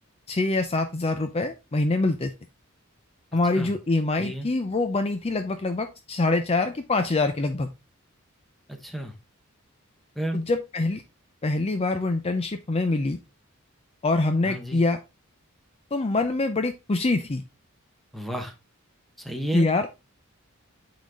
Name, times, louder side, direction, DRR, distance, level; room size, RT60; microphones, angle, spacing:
voice 1, 0.3-2.3 3.3-7.7 10.3-11.0 11.4-13.2 14.0-15.0 15.9-17.4 19.5-19.9, left 2 dB, 30° left, 7 dB, 0.5 m, -25 dB
voice 2, 8.7-9.1 10.1-10.4 14.4-14.8 18.1-18.5 19.2-19.7, right 1 dB, ahead, 4 dB, 1.1 m, -32 dB
8.4 x 4.0 x 3.6 m, 0.26 s
head